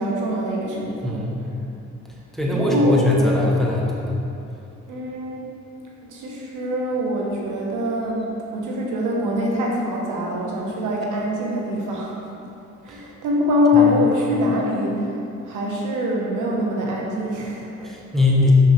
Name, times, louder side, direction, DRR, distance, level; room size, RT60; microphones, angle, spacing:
voice 1, 0.0-1.5 2.5-3.4 4.9-5.4 6.1-8.3 8.5-12.2 12.8-17.9, left 1 dB, 80° right, -2 dB, 1.3 m, -23 dB
voice 2, 1.0-1.4 2.3-4.2 17.8-18.5, left 2 dB, ahead, -3 dB, 1.1 m, -21 dB
6.2 x 6.0 x 3.5 m, 2.7 s
cardioid pair, 90°, 30 cm